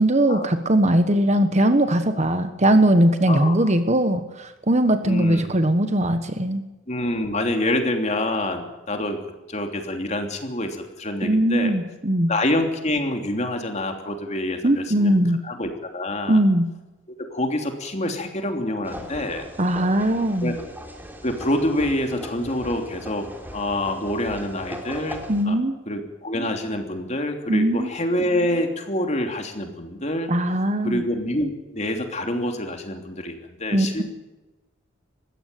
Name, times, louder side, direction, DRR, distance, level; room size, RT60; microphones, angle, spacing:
voice 1, 0.0-6.6 11.2-12.3 14.6-15.4 16.3-16.7 19.6-20.5 25.3-25.7 27.5-27.9 30.3-31.0 33.7-34.0, right 1 dB, 35° right, 9 dB, 1.2 m, -20 dB
voice 2, 3.3-3.7 5.0-5.4 6.9-9.2 9.5-11.7 12.3-16.4 17.2-19.5 20.4-20.5 21.2-25.2 25.4-25.6 25.9-30.3 30.8-34.0, left 1 dB, 35° left, 4 dB, 3.1 m, -26 dB
sound 1, 18.8-25.4, equal, 10° right, 3.3 m, -39 dB
20.5 x 15.5 x 9.2 m, 1.1 s
head